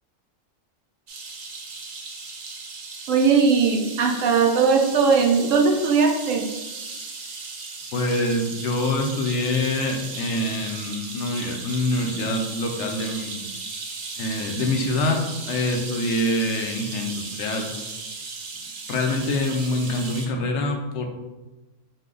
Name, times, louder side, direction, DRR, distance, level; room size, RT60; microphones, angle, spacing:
sound 1, 1.1-20.3, right 4 dB, 55° right, 0.6 m, -36 dB
voice 1, 3.1-6.5, right 5 dB, 80° right, 2 dB, 1.0 m, -19 dB
voice 2, 7.9-13.5 14.2-17.7 18.9-21.0, left 1 dB, 70° left, 3 dB, 0.9 m, -25 dB
5.2 x 2.2 x 3.7 m, 1.1 s
omnidirectional pair, 1.3 m